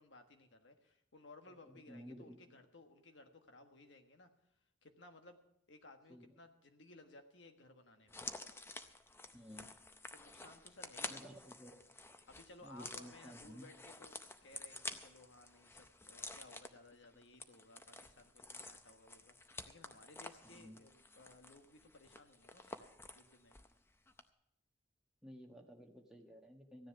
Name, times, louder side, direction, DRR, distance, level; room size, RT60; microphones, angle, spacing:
voice 1, 0.0-4.3 4.8-5.4 5.7-8.2 10.1-11.3 12.3-22.9 23.1-23.6, left 2 dB, 75° left, 6 dB, 1.4 m, -60 dB
voice 2, 1.6-2.4 6.1-6.3 9.3-9.7 11.1-11.8 12.6-13.6 20.5-20.8 25.2-26.9, equal, 5° right, 1 dB, 1.3 m, -54 dB
sound 1, 8.1-23.8 24.1-24.2, left 3 dB, 10° left, 0.6 m, -50 dB
15.0 x 10.0 x 5.9 m, 0.78 s
head